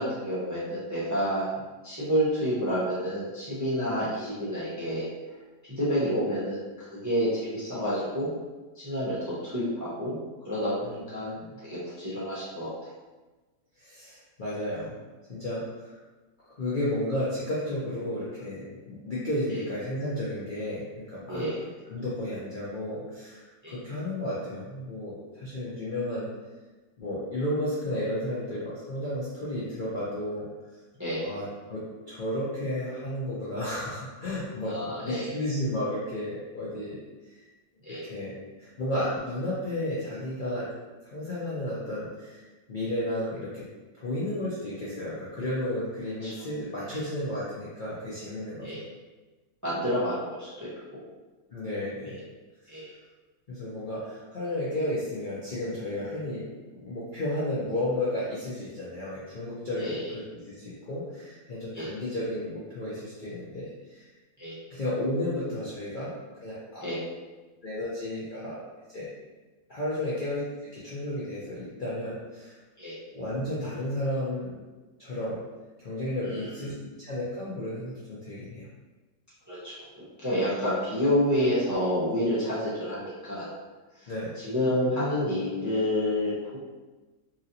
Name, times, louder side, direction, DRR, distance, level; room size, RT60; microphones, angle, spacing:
voice 1, 0.0-1.5 1.8-5.0 5.6-8.3 8.8-10.2 10.4-11.3 11.6-12.7 19.5-19.6 21.3-21.6 23.6-23.7 31.0-31.3 34.7-35.4 37.8-38.0 46.2-46.3 46.9-47.0 48.6-48.8 49.6-51.0 52.1-52.2 52.7-52.9 59.8-60.1 61.7-61.9 64.4-64.6 66.8-67.0 72.8-72.9 76.2-76.6 79.5-79.8 80.2-83.5 84.0-84.1 84.4-86.6, equal, 25° right, -10 dB, 0.4 m, -29 dB
voice 2, 10.8-11.5 13.8-15.0 15.3-16.0 16.6-21.4 21.9-26.3 27.0-30.5 31.2-37.0 37.3-37.4 38.0-40.7 41.1-42.4 42.7-43.7 44.0-48.7 51.5-52.2 53.5-56.5 56.7-64.1 64.7-66.1 66.4-66.8 67.6-68.6 68.9-69.1 69.7-70.4 70.7-72.5 73.1-74.6 75.0-75.4 75.8-76.7 77.0-78.7 84.1-84.3, left 1 dB, 90° left, -9 dB, 0.4 m, -33 dB
3.0 x 2.7 x 2.6 m, 1.2 s
omnidirectional pair, 1.8 m